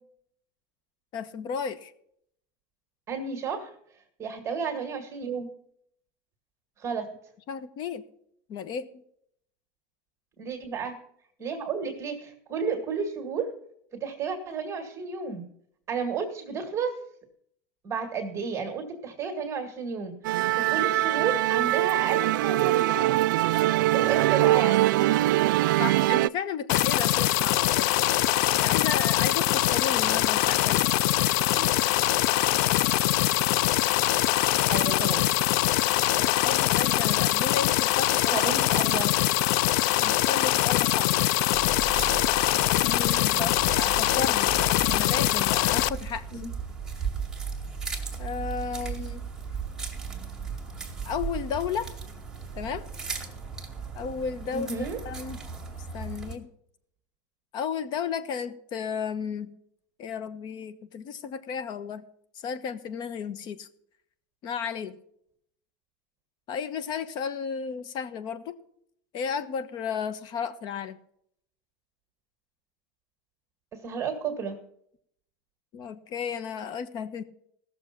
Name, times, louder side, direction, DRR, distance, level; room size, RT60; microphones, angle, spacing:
voice 1, 1.1-1.9 7.5-8.0 8.5-9.0 25.8-28.2 28.6-30.8 36.2-38.4 40.0-41.3 42.8-46.2 48.2-49.3 51.0-51.9 52.6-52.9 54.0-54.7 55.0-55.4 55.9-56.5 57.5-59.5 60.0-62.1 62.4-63.7 64.4-65.0 66.5-68.6 69.1-71.0 75.7-77.2, left 7 dB, 45° left, 13 dB, 1.2 m, -33 dB
voice 2, 3.1-3.7 4.2-5.5 6.8-7.1 10.4-11.0 11.4-13.5 13.9-15.4 15.9-17.0 17.8-23.1 23.9-25.4 31.6-31.7 32.2-32.5 34.7-35.3 38.3-39.1 43.3-43.5 46.3-46.5 54.5-55.0 73.7-74.6, right 5 dB, 25° right, 4 dB, 2.0 m, -32 dB
Musical instrument, 20.2-26.3, right 16 dB, 90° right, 0.4 m, -23 dB
sound 1, 26.7-45.9, left 15 dB, 65° left, 0.5 m, -23 dB
sound 2, 41.5-56.4, right 6 dB, 5° right, 2.3 m, -36 dB
16.5 x 6.9 x 6.0 m, 0.69 s
supercardioid pair, 140°, 10 cm